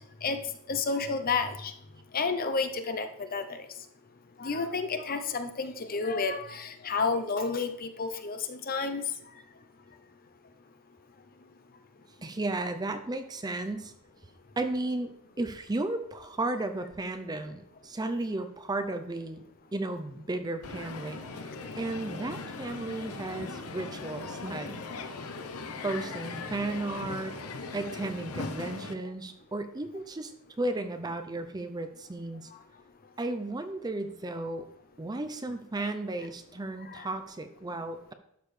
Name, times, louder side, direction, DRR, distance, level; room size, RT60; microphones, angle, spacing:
voice 1, 0.7-1.7 2.1-3.4 4.4-9.0 36.9-37.1, left 4 dB, 40° left, 8 dB, 0.7 m, -30 dB
voice 2, 12.2-13.9 14.6-15.1 15.4-19.4 19.7-24.8 25.8-27.4 27.7-30.3 30.6-32.5 33.2-34.7 35.0-38.1, right 2 dB, 20° right, 8 dB, 0.5 m, -34 dB
Crowd, 20.6-28.9, left 3 dB, 75° left, 0.8 m, -39 dB
12.0 x 6.5 x 3.3 m, 0.74 s
head